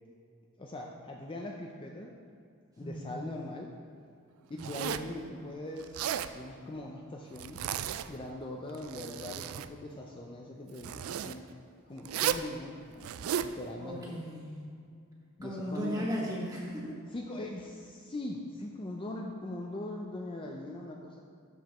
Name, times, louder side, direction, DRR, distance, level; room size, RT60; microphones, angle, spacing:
voice 1, 0.6-2.1 2.8-3.7 4.5-7.6 8.1-11.5 11.9-13.1 13.4-14.1 15.4-16.1 17.1-21.2, left 1 dB, 25° left, 0 dB, 0.4 m, -41 dB
Zipper (clothing), 4.6-5.1 5.8-6.3 7.4-8.2 8.7-9.7 10.8-11.4 12.1-12.5 13.0-13.5, right 9 dB, 85° right, 0.3 m, -34 dB
voice 2, 13.8-14.6 15.4-17.0, equal, 20° right, -4 dB, 1.5 m, -36 dB
12.5 x 5.2 x 3.0 m, 2.3 s
head